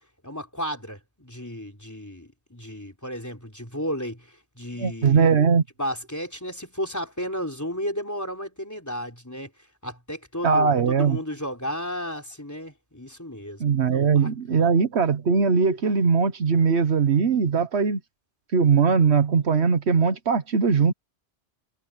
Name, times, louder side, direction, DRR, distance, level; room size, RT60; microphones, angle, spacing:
voice 1, 0.2-5.3 5.8-9.5 9.8-14.7, equal, 15° left, 3.8 m, -33 dB
voice 2, 4.8-5.6 10.4-11.2 13.6-18.0 18.5-20.9, right 5 dB, 75° right, 1.4 m, -20 dB
omnidirectional pair, 1.1 m